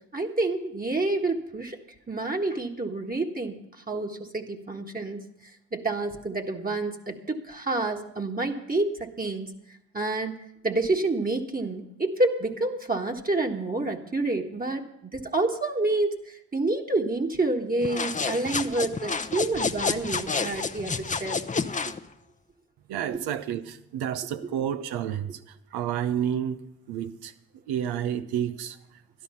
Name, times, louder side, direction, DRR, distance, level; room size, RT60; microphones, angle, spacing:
voice 1, 0.1-1.8 2.1-3.6 3.9-5.2 5.7-9.5 9.9-10.4 10.6-21.4 23.1-23.2, right 2 dB, 25° right, 1.4 m, -28 dB
sound 1, 17.8-22.0, left 4 dB, 20° left, 0.7 m, -29 dB
voice 2, 22.9-27.3 27.7-28.8, right 9 dB, 80° right, 0.8 m, -30 dB
12.0 x 11.0 x 5.6 m
supercardioid pair, 55°, 37 cm